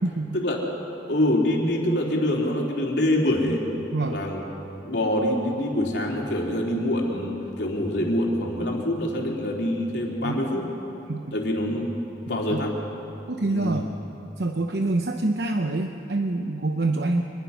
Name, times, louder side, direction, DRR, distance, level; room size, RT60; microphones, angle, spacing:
voice 1, 0.0-0.4 3.9-4.2 10.2-10.4 11.1-11.4 12.3-12.7 13.3-13.9 14.4-17.2, right 2 dB, 60° right, 5 dB, 0.8 m, -26 dB
voice 2, 1.1-3.8 4.1-4.4 4.8-10.7 11.3-12.0 12.3-12.8 13.5-13.8, left 1 dB, 65° left, -1 dB, 3.5 m, -25 dB
25.5 x 21.0 x 5.8 m, 2.8 s
head